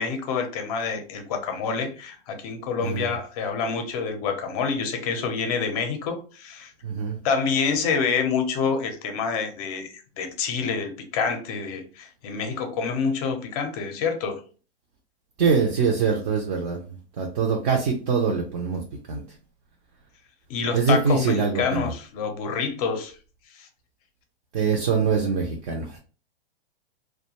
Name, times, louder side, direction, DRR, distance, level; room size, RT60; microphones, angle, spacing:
voice 1, 0.0-6.7 7.2-14.4 20.5-23.1 23.5-23.7, left 5 dB, 35° left, 6 dB, 0.5 m, -27 dB
voice 2, 2.8-3.1 6.8-7.2 15.4-16.8 17.2-18.8 19.1-19.2 20.7-21.9 24.5-26.0, right 5 dB, 40° right, 1 dB, 0.5 m, -23 dB
2.3 x 2.2 x 2.8 m, 0.37 s
hypercardioid pair, 145°, 32 cm